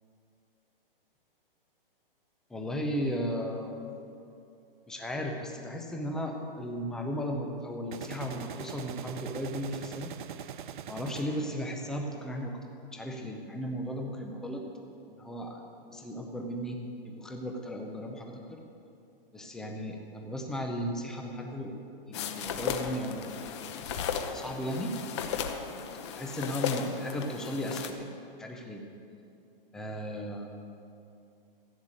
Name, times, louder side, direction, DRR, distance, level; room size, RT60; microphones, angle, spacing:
voice 1, 2.5-3.7 4.9-10.1 10.9-12.6 12.9-14.6 15.1-16.8 17.0-18.6 19.3-21.8 22.1-23.5 24.2-24.9 26.1-28.1 28.4-28.8 29.7-30.5, equal, ahead, 2 dB, 0.5 m, -35 dB
sound 1, 3.1-3.3 7.9-12.1, right 9 dB, 60° right, 0.7 m, -43 dB
sound 2, 22.1-27.9, left 7 dB, 30° left, 0.8 m, -35 dB
15.0 x 8.0 x 8.7 m, 2.6 s
hypercardioid pair, 160°, 29 cm